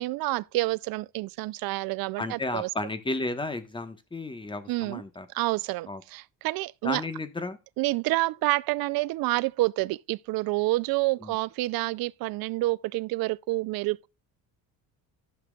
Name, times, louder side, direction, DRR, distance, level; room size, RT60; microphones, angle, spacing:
voice 1, 0.0-2.7 4.7-5.0 5.3-7.0 7.8-14.1, right 20 dB, 70° right, 0.5 m, -28 dB
voice 2, 2.2-5.3 5.9-6.0 6.8-7.6 11.2-11.4, left 2 dB, 15° left, 1.2 m, -33 dB
14.5 x 6.1 x 2.3 m
cardioid pair, 110°, 37 cm